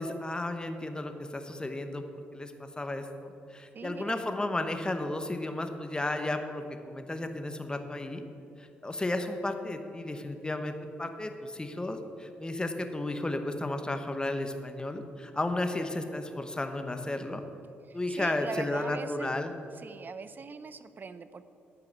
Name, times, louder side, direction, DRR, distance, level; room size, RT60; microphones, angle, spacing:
voice 1, 0.0-2.0 2.3-8.2 8.6-17.4 17.9-19.5, left 2 dB, 15° left, 7 dB, 1.0 m, -33 dB
voice 2, 3.7-4.2 17.9-19.4 19.8-21.4, right 5 dB, 40° right, 13 dB, 0.6 m, -41 dB
11.0 x 4.8 x 8.0 m, 2.7 s
supercardioid pair, 65°, 5 cm